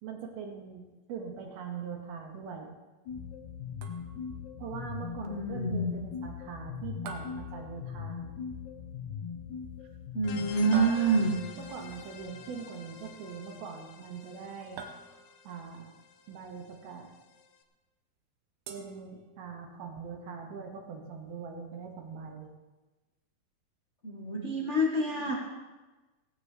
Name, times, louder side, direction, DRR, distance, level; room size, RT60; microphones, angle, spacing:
voice 1, 0.0-2.7 4.6-8.3 10.8-11.2 11.6-14.8 15.4-15.9 16.3-17.1 18.7-22.5, right 6 dB, 85° right, 2 dB, 3.7 m, -42 dB
sound 1, 3.1-12.7, left 7 dB, 70° left, 2.0 m, -41 dB
sound 2, 3.8-4.4 7.1-8.3 10.7-11.6 14.8-15.6 18.7-19.7, right 4 dB, 70° right, 2.5 m, -46 dB
voice 2, 5.2-5.9 10.1-11.4 24.0-25.3, right 2 dB, 50° left, -3 dB, 0.8 m, -27 dB
sound 3, 10.2-17.6, left 7 dB, 85° left, 2.9 m, -48 dB
16.5 x 16.0 x 3.4 m, 1.2 s
omnidirectional pair, 4.3 m